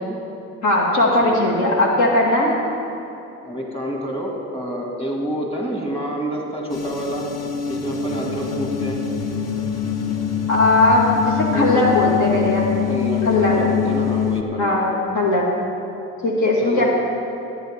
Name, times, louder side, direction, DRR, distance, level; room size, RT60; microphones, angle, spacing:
voice 1, 0.6-2.5 10.5-12.7 13.2-13.6 14.6-14.8 15.1-15.5 16.2-16.9, left 2 dB, 75° left, -3 dB, 2.3 m, -18 dB
voice 2, 1.2-1.6 3.4-7.3 7.7-9.0 11.5-11.9 12.9-14.8 16.6-16.9, right 1 dB, 20° left, -1 dB, 2.2 m, -28 dB
sound 1, 6.7-14.4, left 9 dB, 60° left, 1.0 m, -24 dB
18.5 x 9.1 x 3.7 m, 2.9 s
cardioid pair, 90°, 30 cm